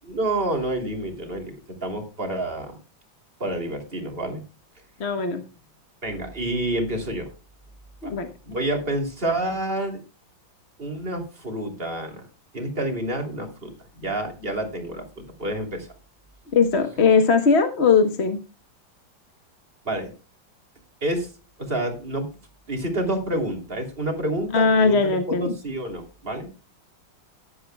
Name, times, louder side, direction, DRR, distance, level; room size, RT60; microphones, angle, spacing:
voice 1, 0.0-2.8 3.4-4.4 6.0-7.3 8.0-8.1 8.4-10.0 10.8-12.2 12.5-15.9 19.8-20.1 21.0-21.3 21.6-22.3 22.7-26.5, right 1 dB, 30° right, 3 dB, 3.0 m, -28 dB
voice 2, 5.0-5.4 8.0-8.3 16.5-18.4 24.5-25.6, left 5 dB, 40° left, 7 dB, 1.1 m, -19 dB
15.0 x 11.0 x 2.2 m, 0.33 s
omnidirectional pair, 2.1 m